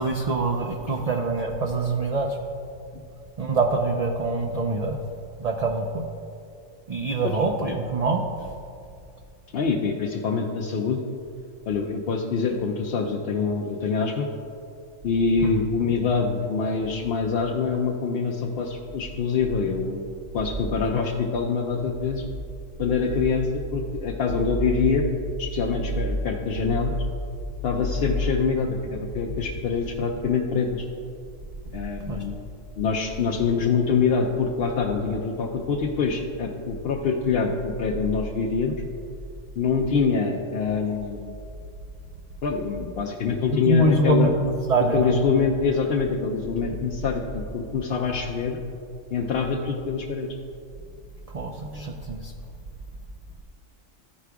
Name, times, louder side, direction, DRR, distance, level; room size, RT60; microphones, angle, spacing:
voice 1, 0.0-2.3 3.4-5.0 5.4-6.0 6.9-8.2 15.4-15.6 32.1-32.2 43.5-45.1 51.3-52.3, right 2 dB, 55° right, 1 dB, 0.4 m, -24 dB
voice 2, 9.5-11.0 11.7-14.3 15.0-20.1 20.3-22.2 22.8-25.0 25.4-26.9 27.6-30.8 31.7-32.4 32.8-38.7 39.6-41.4 42.4-44.3 44.9-48.6 49.1-50.3, left 5 dB, 60° left, -1 dB, 0.7 m, -25 dB
13.5 x 4.7 x 3.5 m, 2.4 s
omnidirectional pair, 1.3 m